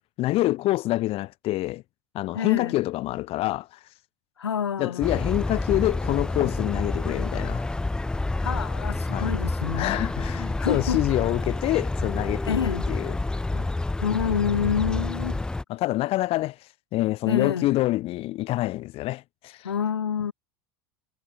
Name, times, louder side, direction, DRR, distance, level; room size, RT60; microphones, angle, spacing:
voice 1, 0.2-1.8 2.1-3.7 4.8-7.7 9.1-9.3 9.7-12.6 12.9-13.1 13.5-13.7 15.7-16.6 16.9-19.7, left 17 dB, 45° left, 0.9 m, -26 dB
voice 2, 2.3-2.7 4.4-5.4 8.3-9.9 10.6-11.0 12.4-12.9 13.9-15.4 17.3-17.7 19.6-20.3, left 8 dB, 90° left, 0.9 m, -27 dB
sound 1, 5.0-15.6, left 2 dB, 5° left, 0.3 m, -28 dB
hypercardioid pair, 85°, 13 cm